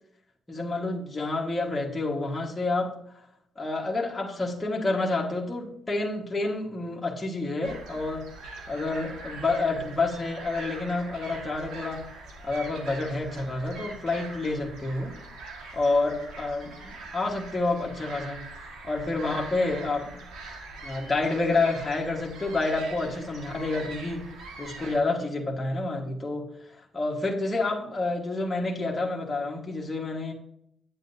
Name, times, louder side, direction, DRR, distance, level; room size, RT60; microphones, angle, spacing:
voice 1, 0.5-2.9 3.5-8.3 8.7-12.1 12.4-15.2 15.7-18.4 18.8-20.2 20.8-24.2 24.6-26.5 26.8-30.3, left 2 dB, 20° left, -2 dB, 1.5 m, -29 dB
sound 1, 7.6-25.0, right 3 dB, 85° right, 1.7 m, -43 dB
8.9 x 7.7 x 2.7 m, 0.71 s
cardioid pair, 90°, 0 cm